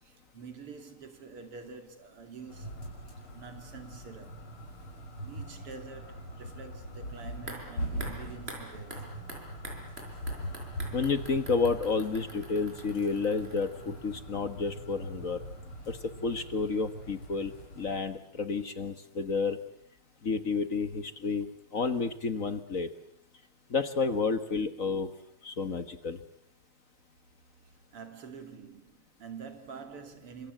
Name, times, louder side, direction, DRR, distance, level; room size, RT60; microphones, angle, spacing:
voice 1, 0.0-4.4 5.2-9.2 27.9-30.5, right 5 dB, 85° right, 3.5 m, -47 dB
sound 1, 2.5-18.0, equal, 75° left, 7.4 m, -42 dB
sound 2, 7.5-14.4 14.7-14.8, right 1 dB, 25° right, 5.7 m, -47 dB
voice 2, 10.9-15.4 15.9-19.6 20.2-21.5 21.7-22.9 23.7-25.1 25.4-26.2, left 4 dB, 40° left, 1.6 m, -30 dB
29.0 x 26.0 x 7.9 m
omnidirectional pair, 2.4 m